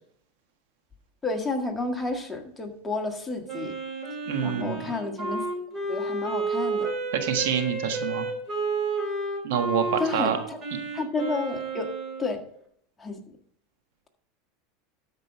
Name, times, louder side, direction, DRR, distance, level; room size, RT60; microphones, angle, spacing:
voice 1, 1.2-3.7 4.4-5.5 5.9-6.9 10.0-10.6 10.9-11.9 12.2-12.4 13.0-13.4, left 3 dB, 15° left, 3 dB, 1.7 m, -31 dB
Wind instrument woodwind instrument, 3.5-12.3, right 3 dB, 25° right, 4.3 m, -31 dB
voice 2, 4.3-4.9 7.1-8.3 9.4-10.4, right 8 dB, 75° right, 6 dB, 1.5 m, -27 dB
13.0 x 5.3 x 4.9 m, 0.68 s
supercardioid pair, 120°, 0 cm